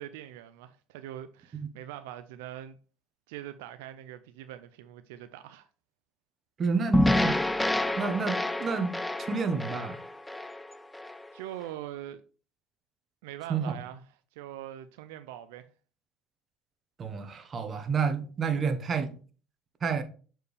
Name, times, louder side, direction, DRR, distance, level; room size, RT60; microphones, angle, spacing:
voice 1, 0.0-2.8 3.3-5.7 11.3-12.2 13.2-14.0 14.3-15.7, right 12 dB, 85° right, 0.4 m, -42 dB
voice 2, 6.6-7.4 8.0-8.9 9.2-10.0 13.5-13.7 17.0-19.1 19.8-20.0, right 5 dB, 40° right, 1.1 m, -29 dB
sound 1, 6.9-11.2, left 1 dB, 10° left, 0.4 m, -28 dB
6.7 x 4.5 x 3.3 m
supercardioid pair, 90°, 0 cm